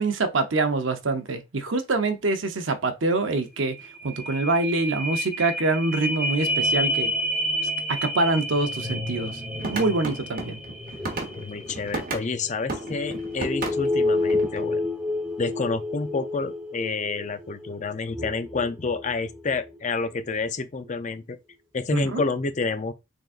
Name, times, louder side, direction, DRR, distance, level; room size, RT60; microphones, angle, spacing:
voice 1, 0.0-3.8 4.0-7.1 7.9-10.6 21.9-22.2, right 3 dB, 65° right, 0.7 m, -25 dB
sound 1, 3.8-19.7 20.2-20.3, left 1 dB, 5° right, 0.7 m, -29 dB
sound 2, 9.6-12.3 12.7-14.6, right 2 dB, 45° right, 1.1 m, -33 dB
voice 2, 11.4-14.9 15.4-21.4 21.7-22.9, left 4 dB, 35° left, 0.4 m, -29 dB
3.9 x 3.4 x 2.5 m
head